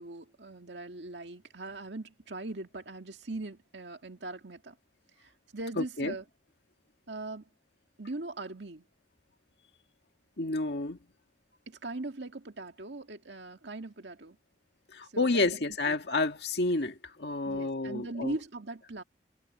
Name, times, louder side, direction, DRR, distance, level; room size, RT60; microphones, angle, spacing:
voice 1, 0.0-4.8 5.2-6.2 7.1-7.5 8.0-8.8 11.7-14.4 15.0-15.6 15.9-16.0 17.4-19.0, right 2 dB, 85° right, 2.0 m, -40 dB
voice 2, 5.8-6.1 10.4-11.0 14.9-18.4, left 2 dB, 70° left, 1.9 m, -30 dB
head